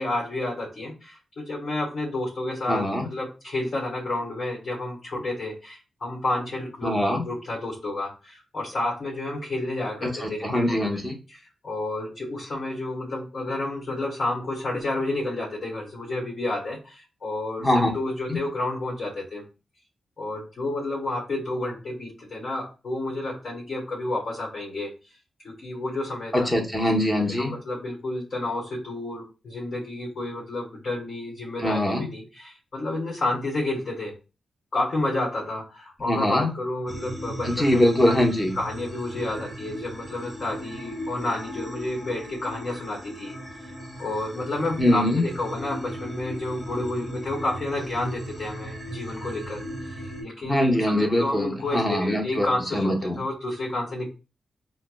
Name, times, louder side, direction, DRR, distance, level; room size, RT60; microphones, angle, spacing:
voice 1, 0.0-11.0 11.3-11.4 11.6-19.4 20.2-24.9 25.4-26.5 26.8-26.9 27.3-34.1 34.7-38.1 38.5-43.3 44.0-50.6 50.9-54.1, left 2 dB, 55° left, -3 dB, 1.2 m, -30 dB
voice 2, 2.7-3.1 6.8-7.2 10.0-11.1 17.6-17.9 18.3-18.4 26.3-27.5 31.6-32.1 36.0-36.5 37.4-38.5 44.8-45.2 50.4-52.5 52.7-53.2, left 1 dB, 15° left, 0 dB, 1.0 m, -23 dB
sound 1, 36.9-50.2, equal, 10° right, 1.2 m, -37 dB
4.6 x 2.1 x 2.2 m, 0.32 s
cardioid pair, 80°, 0 cm